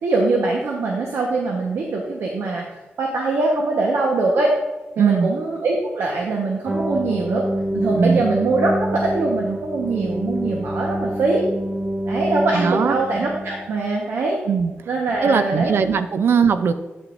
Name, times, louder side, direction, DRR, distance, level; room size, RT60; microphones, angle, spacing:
voice 1, 0.0-4.5 5.0-7.5 7.7-11.5 12.1-14.4 14.9-15.9, right 3 dB, 85° right, -1 dB, 1.1 m, -22 dB
voice 2, 5.0-5.3 7.9-8.2 12.5-12.9 14.5-14.7 15.2-16.7, right 6 dB, 70° right, 10 dB, 0.6 m, -19 dB
sound 1, 6.7-13.7, right 1 dB, 10° right, 0.7 m, -26 dB
9.0 x 8.9 x 2.6 m, 1.1 s
wide cardioid pair, 110°, 4 cm